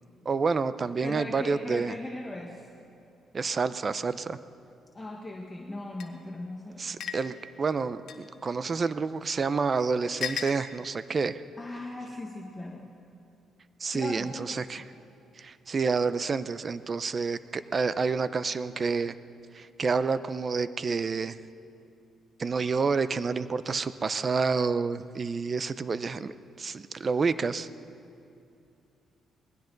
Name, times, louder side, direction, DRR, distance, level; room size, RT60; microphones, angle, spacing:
voice 1, 0.2-2.0 3.3-4.4 6.8-11.4 13.8-14.8 15.4-19.1 19.5-21.4 22.4-27.7, right 4 dB, 40° right, 14 dB, 0.6 m, -29 dB
voice 2, 1.0-2.7 4.9-7.0 11.6-13.0 13.9-14.6, left 2 dB, 15° left, 0 dB, 1.4 m, -38 dB
sound 1, 6.0-6.1 7.0-7.2 8.1-8.2 9.3-9.4 10.2-10.6, left 8 dB, 70° left, 1.0 m, -33 dB
20.5 x 16.0 x 4.0 m, 2.6 s
cardioid pair, 90°, 0 cm